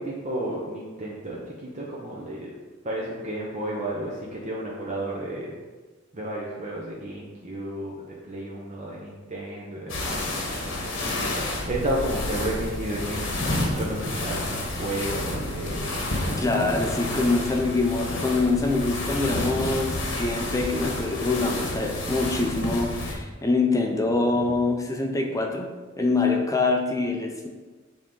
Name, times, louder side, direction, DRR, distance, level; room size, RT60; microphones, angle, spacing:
voice 1, 0.0-2.5 2.8-5.5 6.1-7.9 8.3-10.2 11.7-16.4, right 1 dB, 35° right, -4 dB, 0.8 m, -32 dB
sound 1, 9.9-23.1, left 1 dB, 70° left, 1.3 m, -30 dB
voice 2, 16.4-25.7 26.0-27.5, left 3 dB, 15° left, 2 dB, 0.6 m, -25 dB
7.1 x 3.6 x 3.8 m, 1.3 s
head